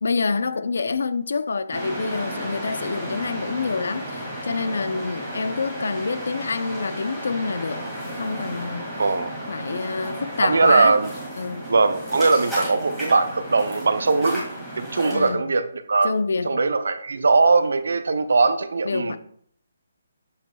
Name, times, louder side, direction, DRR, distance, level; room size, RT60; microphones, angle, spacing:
voice 1, 0.0-7.9 8.1-9.0 9.5-10.9 11.4-11.7 15.1-15.4 16.0-16.6 18.8-19.2, left 4 dB, 65° left, 0.5 m, -27 dB
sound 1, 1.7-15.3, right 1 dB, ahead, 2.1 m, -33 dB
voice 2, 9.0-9.3 10.4-11.1 11.7-14.4 14.8-16.1 16.4-19.2, right 4 dB, 65° right, 0.6 m, -20 dB
7.9 x 6.1 x 2.3 m
hypercardioid pair, 175°, 0 cm